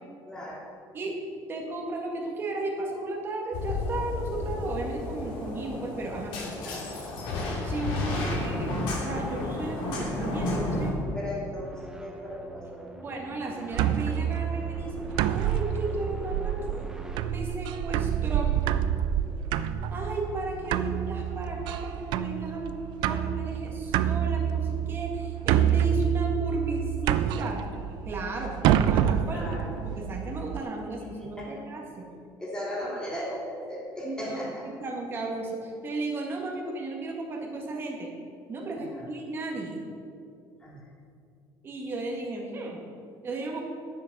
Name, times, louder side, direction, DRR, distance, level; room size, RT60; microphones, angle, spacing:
voice 1, 0.3-0.6 6.4-6.9 11.1-13.1 19.2-19.5 28.3-28.5 29.2-29.7 31.4-31.6 32.4-34.7 38.7-39.1 40.6-40.8, equal, 10° left, -6 dB, 3.0 m, -37 dB
voice 2, 1.5-6.3 7.6-8.7 9.0-10.9 13.0-14.9 15.3-16.9 17.2-18.5 19.9-22.7 23.0-27.6 28.1-32.1 34.0-38.1 38.5-39.8 41.6-42.8 43.2-43.6, right 2 dB, 25° right, 0 dB, 1.8 m, -34 dB
sound 1, 2.7-17.2, right 1 dB, 10° right, 0.7 m, -48 dB
sound 2, 3.5-10.9, left 2 dB, 75° left, 2.8 m, -32 dB
sound 3, 13.7-30.6, right 10 dB, 70° right, 0.5 m, -28 dB
10.0 x 7.4 x 6.0 m, 2.5 s
cardioid pair, 150°, 8 cm